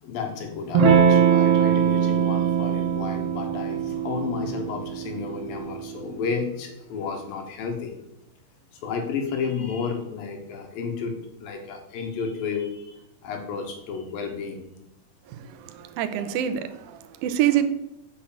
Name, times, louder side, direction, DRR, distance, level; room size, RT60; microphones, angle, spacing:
voice 1, 0.0-8.0 8.7-11.1 11.4-14.6, left 5 dB, 65° left, 2.8 m, -32 dB
Electric guitar / Strum, 0.7-5.9, right 7 dB, 55° right, 1.9 m, -22 dB
voice 2, 15.3-17.7, right 11 dB, 80° right, 2.3 m, -26 dB
7.3 x 6.2 x 7.3 m
omnidirectional pair, 4.7 m